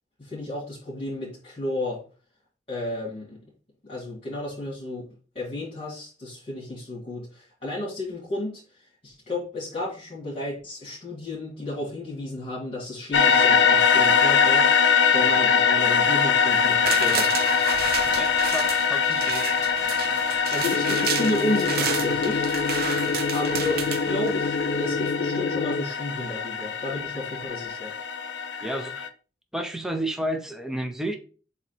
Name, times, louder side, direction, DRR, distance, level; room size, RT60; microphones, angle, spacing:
voice 1, 0.2-2.0 2.7-3.4 3.8-5.1 5.3-17.3 20.5-22.4 23.3-27.9, left 1 dB, 35° left, -7 dB, 2.4 m, -32 dB
sound 1, 13.1-29.1, left 6 dB, 85° left, 0.7 m, -23 dB
sound 2, 16.5-24.7 25.1-25.2, right 8 dB, 60° right, 0.5 m, -32 dB
voice 2, 18.1-19.5 28.6-29.1 29.5-31.2, right 1 dB, 5° right, 5 dB, 0.7 m, -31 dB
sound 3, 20.7-25.8, left 4 dB, 50° left, 0.4 m, -28 dB
7.2 x 2.9 x 4.4 m, 0.37 s
head